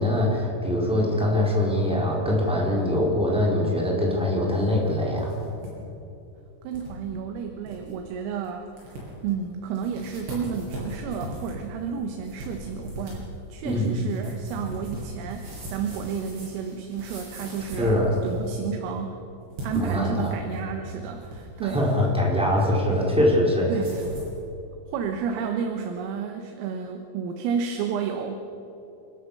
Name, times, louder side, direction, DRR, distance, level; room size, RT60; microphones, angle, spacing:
voice 1, 0.0-5.4 13.6-14.0 17.8-18.2 19.8-20.3 21.6-23.7, left 1 dB, ahead, -3 dB, 3.6 m, -23 dB
sound 1, 4.9-5.7 6.0-6.1 6.7-6.9 7.3-7.4 7.6-7.9 8.4-8.5 8.8-9.3 9.7-18.6 19.4-20.7 21.0-22.0 23.7-24.4, right 1 dB, 60° right, 9.0 m, -39 dB
voice 2, 6.6-8.7 9.2-18.0 18.2-19.2 19.6-21.9 23.7-24.0 24.9-28.5, right 6 dB, 85° right, 4 dB, 3.9 m, -31 dB
29.0 x 13.5 x 6.8 m, 2.9 s
omnidirectional pair, 5.8 m